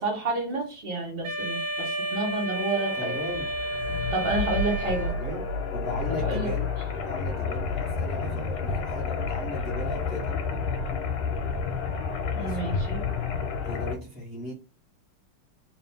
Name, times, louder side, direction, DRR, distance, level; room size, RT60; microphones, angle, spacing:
voice 1, 0.0-3.2 4.1-5.1 6.2-6.5 12.3-13.0, right 3 dB, 35° right, 0 dB, 1.1 m, -29 dB
Wind instrument woodwind instrument, 1.2-5.4, right 1 dB, 70° right, 1.7 m, -32 dB
sound 1, 2.4-13.9, left 4 dB, 65° left, 1.4 m, -30 dB
voice 2, 2.9-3.5 5.1-10.3 12.3-12.7 13.6-14.5, left 2 dB, 45° left, -3 dB, 0.8 m, -37 dB
3.8 x 2.8 x 3.4 m, 0.33 s
omnidirectional pair, 2.4 m